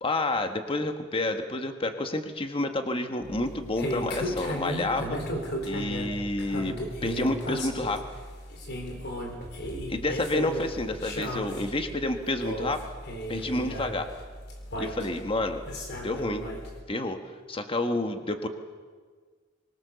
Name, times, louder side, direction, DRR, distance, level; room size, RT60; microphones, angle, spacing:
voice 1, 0.0-5.2 5.6-6.8 7.0-8.1 9.9-12.8 13.3-14.1 14.8-15.6 16.0-16.5 16.9-17.2 17.5-18.5, left 2 dB, 30° left, 6 dB, 1.5 m, -29 dB
sound 1, 3.2-16.8, equal, 60° left, 3.8 m, -35 dB
24.5 x 21.5 x 6.9 m, 1.5 s
head